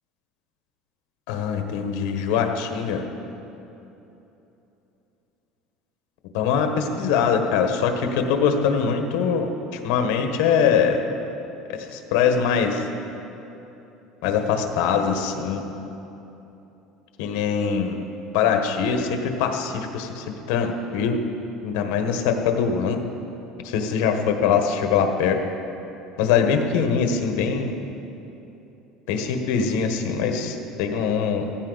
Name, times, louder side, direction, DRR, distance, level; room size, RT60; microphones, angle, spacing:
voice 1, 1.3-3.0 6.3-9.5 9.8-11.0 11.9-12.8 14.2-15.7 17.2-18.0 18.3-21.2 21.6-23.0 23.6-25.4 26.2-27.8 29.1-31.5, left 6 dB, 75° left, 5 dB, 1.3 m, -22 dB
15.5 x 15.0 x 4.1 m, 3.0 s
cardioid pair, 175°, 0 cm